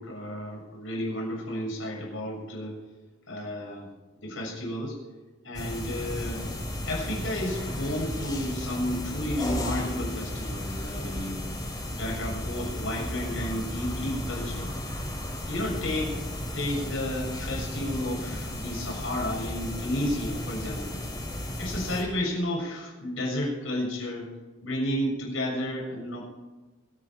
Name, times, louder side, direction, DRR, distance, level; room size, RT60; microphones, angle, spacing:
voice 1, 0.0-2.8 3.3-3.9 4.2-4.9 5.4-6.4 6.8-11.4 11.9-14.7 15.5-16.2 16.5-21.0 21.6-24.3 24.6-26.2, left 1 dB, 75° left, -2 dB, 7.0 m, -32 dB
sound 1, 5.5-22.0, left 1 dB, 20° left, 3.5 m, -34 dB
25.0 x 9.5 x 5.0 m, 1.2 s
head